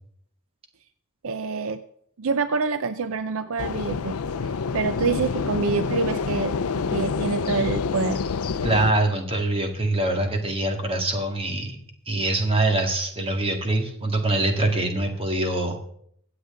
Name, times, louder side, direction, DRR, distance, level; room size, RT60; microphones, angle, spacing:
voice 1, 1.2-1.8 2.2-6.5 6.9-8.2, right 4 dB, 65° right, 11 dB, 0.6 m, -26 dB
sound 1, 3.6-8.9, left 5 dB, 70° left, 0.6 m, -27 dB
voice 2, 8.6-11.8 12.1-15.8, right 2 dB, 25° right, 4 dB, 1.9 m, -24 dB
24.0 x 8.0 x 3.8 m, 0.67 s
head